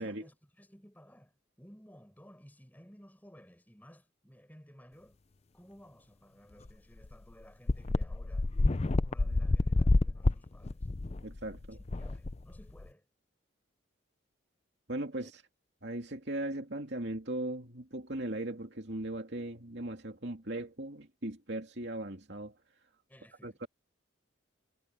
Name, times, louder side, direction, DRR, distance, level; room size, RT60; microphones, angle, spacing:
voice 1, 0.0-5.2 5.5-8.5 8.9-10.9 12.0-13.1 15.1-15.3 23.1-23.7, equal, 10° left, 6.4 m, -57 dB
sound 1, 6.7-6.8 7.0-7.1 7.7-12.9, left 2 dB, 30° left, 0.5 m, -29 dB
voice 2, 11.2-11.8 14.9-15.4 15.8-22.5 23.4-23.7, right 1 dB, 55° right, 2.8 m, -38 dB
head